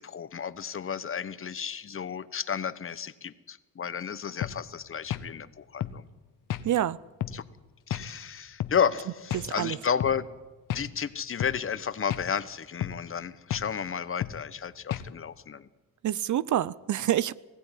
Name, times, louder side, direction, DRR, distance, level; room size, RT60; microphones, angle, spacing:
voice 1, 0.0-6.0 7.3-7.4 7.9-10.3 10.7-15.7, left 7 dB, 35° left, 1.1 m, -32 dB
sound 1, 4.4-4.6 5.1-5.3 5.8-6.0 6.5-6.7 7.2-7.4 7.9-8.1 8.6-8.8 9.3-9.5 10.0-10.2 10.7-10.9 11.4-11.6 12.1-12.3 12.8-13.0 13.5-13.7 14.2-14.4 14.9-15.1, left 11 dB, 65° left, 1.1 m, -32 dB
voice 2, 6.6-7.0 9.3-9.8 16.0-17.3, right 12 dB, 55° right, 0.7 m, -27 dB
20.5 x 15.5 x 10.0 m
cardioid pair, 100°, 36 cm